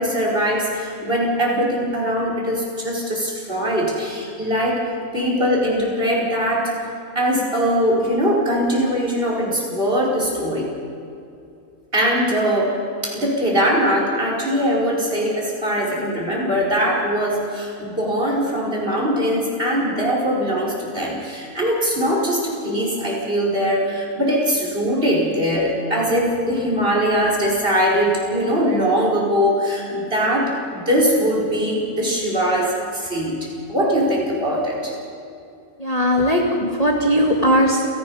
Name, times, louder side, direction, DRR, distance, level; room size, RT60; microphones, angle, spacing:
voice 1, 0.0-4.8 5.1-6.7 7.2-10.7 11.9-12.8 13.0-33.3 33.7-34.9, equal, 40° right, -3 dB, 5.3 m, -21 dB
voice 2, 35.8-37.9, equal, 25° left, 0 dB, 2.1 m, -18 dB
29.5 x 18.0 x 5.6 m, 2.6 s
omnidirectional pair, 1.6 m